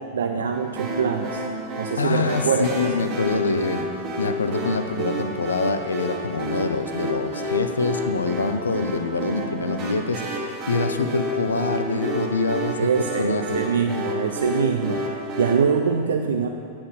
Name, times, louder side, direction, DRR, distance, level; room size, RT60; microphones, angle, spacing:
voice 1, 0.0-1.4 1.8-2.8 12.8-16.5, right 6 dB, 65° right, 4 dB, 0.4 m, -24 dB
sound 1, 0.8-15.5, right 1 dB, 40° right, 1.6 m, -30 dB
voice 2, 2.0-3.9 4.2-12.8 13.2-13.6, left 3 dB, 75° left, 9 dB, 0.5 m, -25 dB
9.5 x 4.3 x 6.4 m, 2.4 s
figure-of-eight pair, 90°, 0 cm